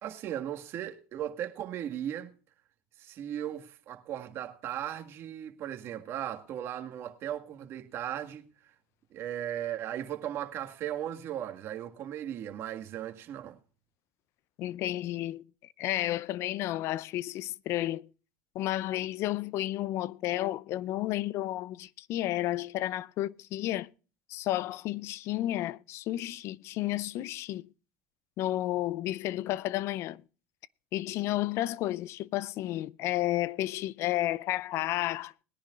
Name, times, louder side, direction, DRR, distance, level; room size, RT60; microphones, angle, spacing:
voice 1, 0.0-2.3 3.0-8.5 9.1-13.6, right 11 dB, 45° right, 1.8 m, -37 dB
voice 2, 14.6-15.4 15.8-18.1 18.5-23.9 24.3-27.7 28.4-30.2 30.9-35.3, left 14 dB, 55° left, 0.6 m, -32 dB
20.5 x 10.5 x 2.5 m
supercardioid pair, 115°, 6 cm